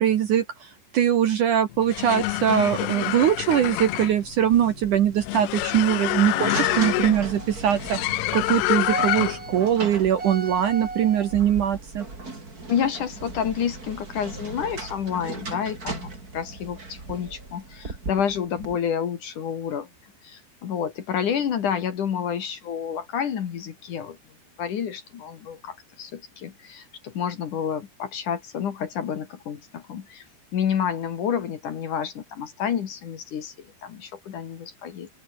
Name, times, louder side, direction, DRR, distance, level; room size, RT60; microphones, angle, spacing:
voice 1, 0.0-12.1, right 10 dB, 60° right, 2.3 m, -22 dB
sound 1, 1.7-9.6, left 21 dB, 80° left, 2.6 m, -27 dB
sound 2, 3.1-18.8, right 3 dB, 20° right, 4.3 m, -36 dB
voice 2, 12.7-19.9 20.2-24.2 24.6-30.2 30.5-35.1, left 8 dB, 55° left, 3.0 m, -29 dB
open air
omnidirectional pair, 5.0 m